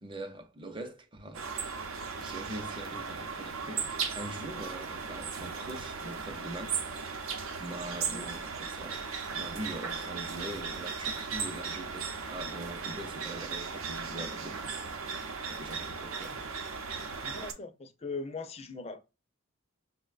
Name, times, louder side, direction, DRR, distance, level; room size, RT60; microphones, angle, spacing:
voice 1, 0.0-1.5 2.2-7.3 7.6-9.0 9.3-14.8 15.5-16.4, right 1 dB, 25° right, 0.5 m, -43 dB
sound 1, 1.3-17.5, right 5 dB, 85° right, 0.6 m, -37 dB
voice 2, 17.2-19.0, left 3 dB, 30° left, 0.4 m, -40 dB
5.4 x 2.1 x 2.4 m
head